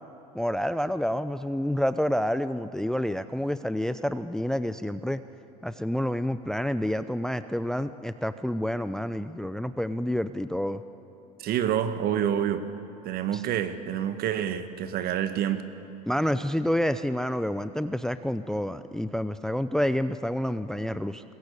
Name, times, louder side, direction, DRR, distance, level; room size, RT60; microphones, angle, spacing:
voice 1, 0.3-5.2 5.6-10.8 13.3-13.4 16.1-21.2, equal, 5° left, 12 dB, 0.6 m, -28 dB
voice 2, 11.4-12.7 13.0-15.6, right 10 dB, 50° right, 10 dB, 1.7 m, -27 dB
23.5 x 20.0 x 8.5 m, 2.8 s
hypercardioid pair, 80°, 20 cm